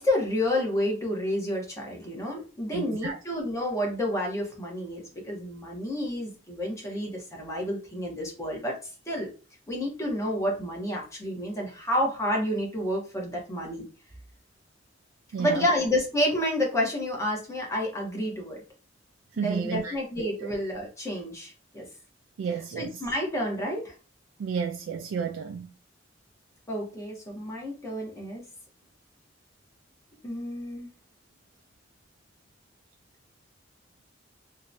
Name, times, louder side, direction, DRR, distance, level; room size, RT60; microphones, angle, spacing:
voice 1, 0.0-9.3 9.7-13.9 15.4-18.6 19.3-21.9 22.7-23.9 26.7-28.4 30.2-30.9, left 1 dB, 15° left, 0.9 m, -30 dB
voice 2, 2.7-3.2 15.3-15.7 19.4-20.5 22.4-22.9 24.4-25.7, right 6 dB, 90° right, 0.3 m, -32 dB
2.8 x 2.1 x 2.5 m
head